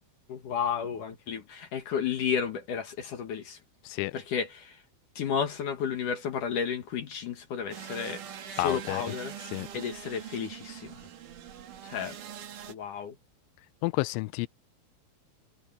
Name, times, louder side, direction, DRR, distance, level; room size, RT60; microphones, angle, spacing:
voice 1, 0.3-3.6 4.1-4.8 5.2-8.2 8.5-9.3 9.7-11.0 11.8-12.2 12.7-13.1, left 7 dB, 60° left, 2.5 m, -32 dB
sound 1, 7.7-12.7, right 10 dB, 55° right, 2.7 m, -43 dB
voice 2, 8.6-9.0 9.5-9.7 13.8-14.5, left 22 dB, 85° left, 2.9 m, -30 dB
omnidirectional pair, 5.5 m